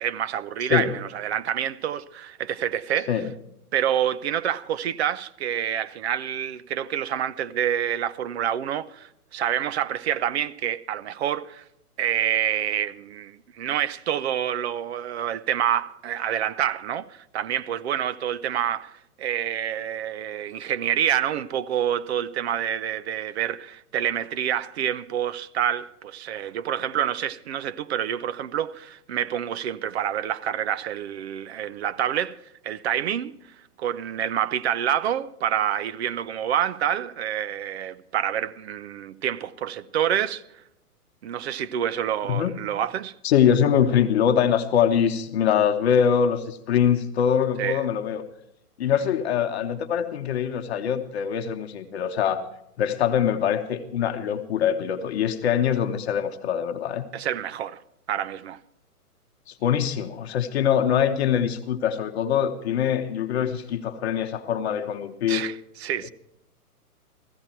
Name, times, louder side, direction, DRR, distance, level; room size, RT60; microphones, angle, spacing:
voice 1, 0.0-3.2 3.7-11.6 12.0-32.4 32.6-33.3 33.8-40.4 41.2-43.1 47.6-47.8 57.1-57.8 58.1-58.6 65.3-65.5 65.8-66.1, right 10 dB, 45° right, 0.7 m, -27 dB
voice 2, 43.2-48.2 48.8-52.5 52.8-57.1 59.5-65.5, left 8 dB, 45° left, 1.1 m, -23 dB
15.5 x 15.5 x 4.5 m
hypercardioid pair, 135°, 46 cm